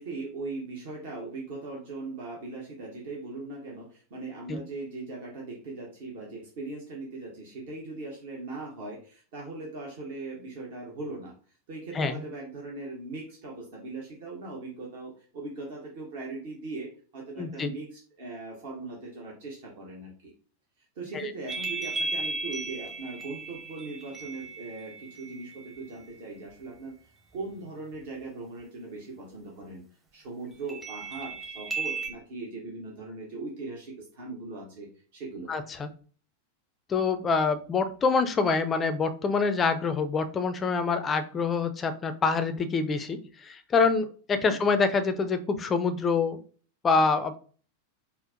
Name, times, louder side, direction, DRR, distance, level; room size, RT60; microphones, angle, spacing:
voice 1, 0.0-11.3 11.7-20.3 21.0-26.9 27.3-29.8 30.1-35.5 44.5-44.6, right 3 dB, 50° right, -2 dB, 0.8 m, -39 dB
voice 2, 17.4-17.7 21.1-21.2 35.5-35.9 36.9-46.4 46.8-47.4, left 4 dB, 20° left, 10 dB, 0.4 m, -26 dB
sound 1, 21.5-26.0 30.7-32.1, right 3 dB, 20° right, 0.8 m, -35 dB
4.3 x 2.0 x 2.5 m, 0.41 s
figure-of-eight pair, 90°, 0 cm